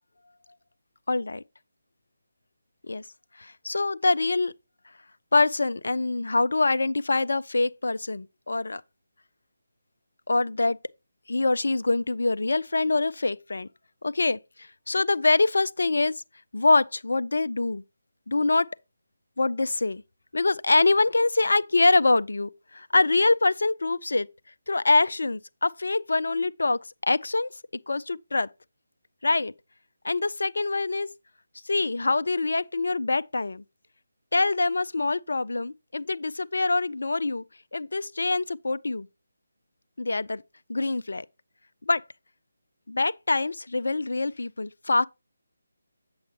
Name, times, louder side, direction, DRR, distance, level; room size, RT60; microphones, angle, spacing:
voice 1, 1.1-1.4 2.8-3.0 3.4-4.5 5.3-8.8 10.3-10.8 11.3-13.7 14.0-16.1 16.5-17.8 18.3-18.7 19.4-20.0 20.3-24.3 24.7-27.5 27.9-28.5 29.2-29.5 30.0-31.1 31.7-33.6 34.3-37.4 37.7-39.1 40.0-40.4 40.7-41.3 41.9-42.0 42.9-45.1, left 3 dB, 60° left, 0.3 m, -24 dB
7.7 x 7.7 x 2.8 m
figure-of-eight pair, 150°, 0 cm